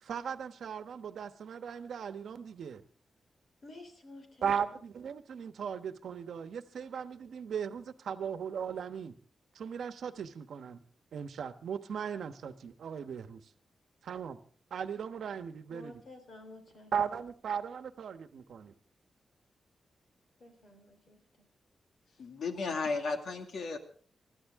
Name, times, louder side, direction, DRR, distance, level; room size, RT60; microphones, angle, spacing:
voice 1, 0.0-2.8 4.4-9.1 9.5-10.8 11.1-13.4 14.0-14.4 14.7-15.9 16.9-18.7, right 7 dB, 75° right, 1.1 m, -37 dB
voice 2, 3.6-4.8 15.7-17.1 20.4-21.5, left 2 dB, 45° left, 3.5 m, -52 dB
voice 3, 22.2-23.8, left 4 dB, 70° left, 2.1 m, -34 dB
25.5 x 13.0 x 3.6 m
wide cardioid pair, 175°, 0 cm